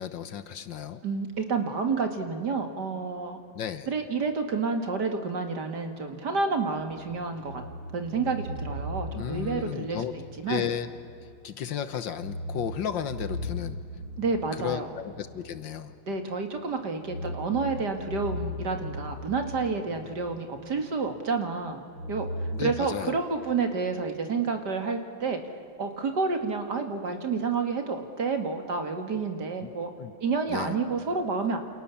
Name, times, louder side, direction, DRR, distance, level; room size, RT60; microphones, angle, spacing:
voice 1, 0.0-1.0 3.5-3.9 9.1-10.1 10.5-10.9 11.4-13.8 14.6-15.9 22.5-23.2 29.6-29.7 30.0-30.1 30.5-30.8 31.2-31.5, left 9 dB, 65° left, 12 dB, 1.7 m, -33 dB
voice 2, 1.0-3.4 3.9-7.6 7.9-10.0 10.4-10.7 14.2-15.0 16.1-21.8 22.1-22.3 22.6-25.4 25.8-29.9 30.2-31.6, right 4 dB, 55° right, 6 dB, 2.6 m, -29 dB
sound 1, 6.7-11.4 11.7-11.8 12.1-16.3 16.9-21.1 21.9-22.6, left 1 dB, 85° right, 6.0 m, -38 dB
29.0 x 28.0 x 7.2 m, 2.4 s
omnidirectional pair, 2.3 m